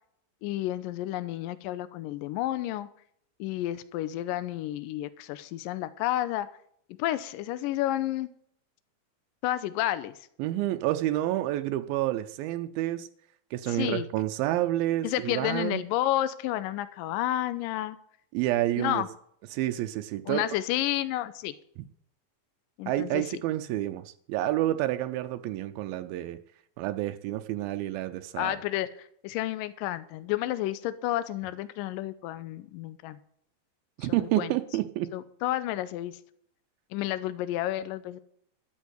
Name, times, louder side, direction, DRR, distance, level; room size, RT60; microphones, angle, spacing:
voice 1, 0.4-2.9 3.4-6.5 6.9-8.3 9.4-10.2 13.7-14.1 15.0-18.0 18.8-19.1 20.3-21.5 22.8-23.4 28.3-33.2 34.0-34.5 35.1-36.2 36.9-38.2, left 14 dB, 80° left, 14 dB, 2.3 m, -31 dB
voice 2, 10.4-13.1 13.5-15.8 18.3-19.0 19.5-20.4 22.9-26.4 26.8-28.6 34.0-35.1, right 14 dB, 85° right, 8 dB, 2.4 m, -29 dB
13.0 x 6.3 x 8.3 m, 0.67 s
omnidirectional pair, 4.2 m